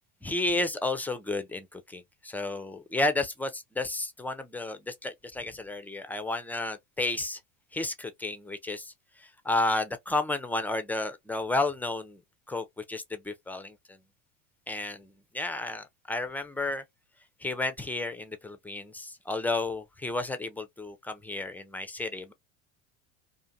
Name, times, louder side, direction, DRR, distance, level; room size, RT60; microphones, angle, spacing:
voice 1, 0.2-7.4 7.7-8.9 9.2-12.2 12.5-13.8 14.7-16.8 17.4-22.3, left 2 dB, 5° left, 0.3 m, -32 dB
2.6 x 2.3 x 2.6 m
hypercardioid pair, 90°, 38 cm